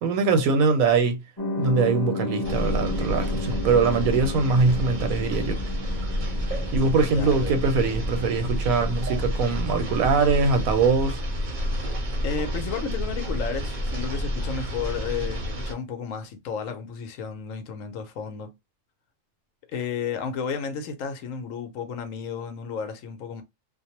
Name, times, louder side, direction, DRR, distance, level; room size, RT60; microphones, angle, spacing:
voice 1, 0.0-1.2 1.6-5.6 6.7-11.2, right 4 dB, 85° right, 1.1 m, -22 dB
sound 1, 1.4-10.4, left 1 dB, 25° left, 0.5 m, -34 dB
sound 2, 2.4-15.7, equal, 45° right, 0.7 m, -29 dB
voice 2, 7.1-7.6 12.2-18.5 19.7-23.4, left 6 dB, 75° left, 1.0 m, -32 dB
2.5 x 2.0 x 2.8 m
omnidirectional pair, 1.4 m